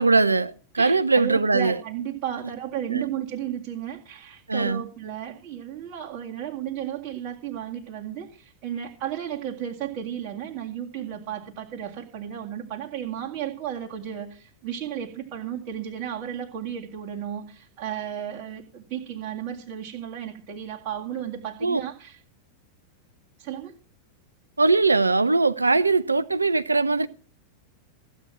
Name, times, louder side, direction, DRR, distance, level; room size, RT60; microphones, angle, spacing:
voice 1, 0.0-1.7 2.9-3.0 4.5-4.8 21.6-21.8 24.6-27.1, right 3 dB, 80° right, 0.6 m, -21 dB
voice 2, 0.8-22.2 23.4-23.8, right 10 dB, 45° right, 2.2 m, -34 dB
15.0 x 9.3 x 6.0 m
figure-of-eight pair, 90°, 0 cm